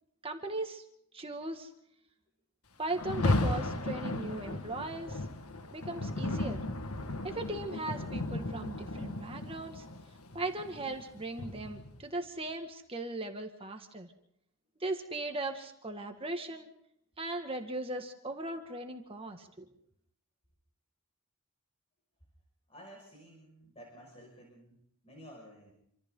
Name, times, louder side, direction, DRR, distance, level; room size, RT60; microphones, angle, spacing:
voice 1, 0.2-0.8 1.1-1.7 2.8-5.2 5.7-6.6 7.2-9.8 10.3-14.1 14.8-16.7 17.2-19.7, right 2 dB, 25° right, 4 dB, 2.0 m, -38 dB
Rain, 2.9-12.0, left 2 dB, 85° left, 1.8 m, -35 dB
voice 2, 22.7-25.7, equal, 25° left, -1 dB, 5.9 m, -53 dB
28.0 x 26.0 x 3.9 m, 0.72 s
head